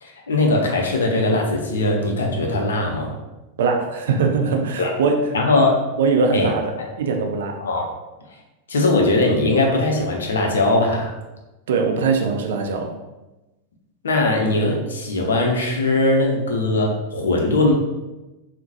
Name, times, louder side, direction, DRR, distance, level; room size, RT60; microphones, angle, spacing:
voice 1, 0.0-3.2 4.8-4.9 5.3-5.7 6.3-6.5 7.6-7.9 8.7-11.1 14.0-17.7, left 2 dB, 65° left, 1 dB, 0.5 m, -20 dB
voice 2, 3.6-5.3 6.0-7.6 11.7-13.0, right 4 dB, 60° right, 3 dB, 0.4 m, -21 dB
3.7 x 2.1 x 2.7 m, 1.0 s
figure-of-eight pair, 90°, 0 cm